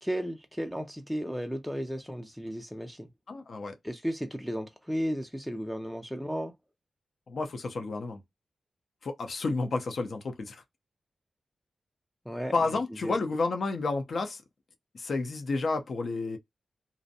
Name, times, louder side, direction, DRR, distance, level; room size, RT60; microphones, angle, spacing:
voice 1, 0.0-3.1 3.8-6.5 12.3-12.6 13.0-13.1, equal, ahead, 0.4 m, -34 dB
voice 2, 3.3-3.7 7.3-8.2 9.0-10.6 12.5-14.4 14.9-16.4, left 3 dB, 50° left, 0.6 m, -31 dB
2.6 x 2.0 x 2.6 m
wide cardioid pair, 175°, 0 cm